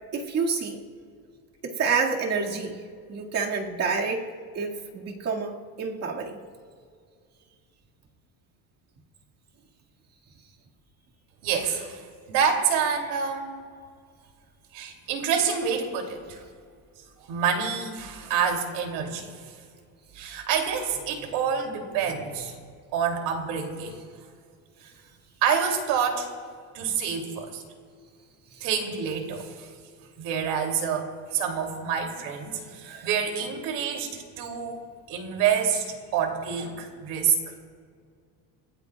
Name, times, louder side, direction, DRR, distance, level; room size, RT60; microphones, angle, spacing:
voice 1, 0.1-0.8 1.6-2.8 3.1-4.3 4.5-6.4 28.6-28.7 32.8-33.1, right 5 dB, 40° right, -1 dB, 2.0 m, -28 dB
voice 2, 11.4-13.6 14.7-16.4 17.3-19.3 20.1-22.6 22.9-24.0 25.4-26.3 26.7-27.6 28.6-29.7 30.2-35.9 36.1-37.5, right 7 dB, 80° right, 3 dB, 2.8 m, -27 dB
29.5 x 15.0 x 2.3 m, 2.1 s
cardioid pair, 155°, 40 cm